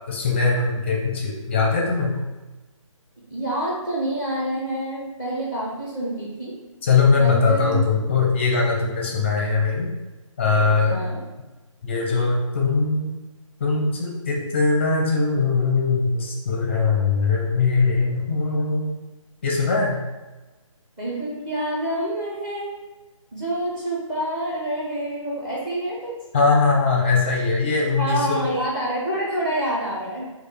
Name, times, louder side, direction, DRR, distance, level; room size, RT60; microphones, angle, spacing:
voice 1, 0.1-2.2 6.8-9.9 10.4-11.0 11.8-13.1 13.6-19.0 19.4-20.0 26.3-28.5, left 4 dB, 20° left, 0 dB, 0.6 m, -21 dB
voice 2, 3.3-6.6 7.2-7.8 10.9-11.2 21.0-22.7 23.3-26.2 28.0-30.2, right 1 dB, 10° right, -6 dB, 0.8 m, -27 dB
6.2 x 2.4 x 3.3 m, 1.1 s
figure-of-eight pair, 160°, 17 cm